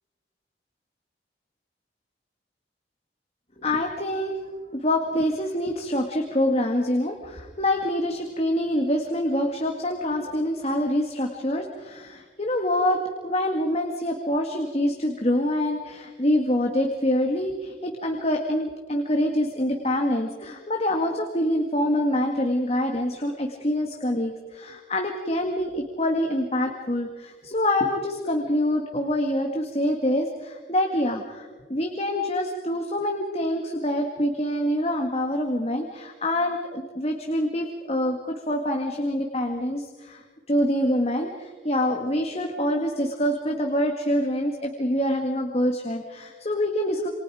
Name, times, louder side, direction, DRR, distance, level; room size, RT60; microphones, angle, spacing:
voice 1, 3.6-4.4 4.7-47.1, left 1 dB, 35° left, 3 dB, 2.0 m, -26 dB
28.0 x 27.5 x 5.0 m, 1.4 s
head